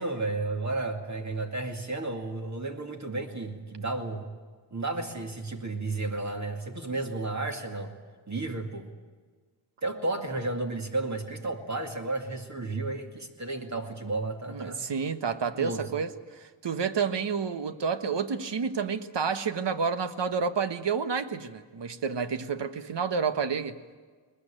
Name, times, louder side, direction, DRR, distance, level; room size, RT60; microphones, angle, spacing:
voice 1, 0.0-4.2 4.7-7.9 8.3-8.9 9.8-14.8 15.6-15.9, right 2 dB, 35° right, 3 dB, 2.4 m, -32 dB
voice 2, 14.5-23.8, right 6 dB, 60° right, 10 dB, 1.4 m, -30 dB
21.0 x 21.0 x 9.0 m, 1.5 s
wide cardioid pair, 95°, 47 cm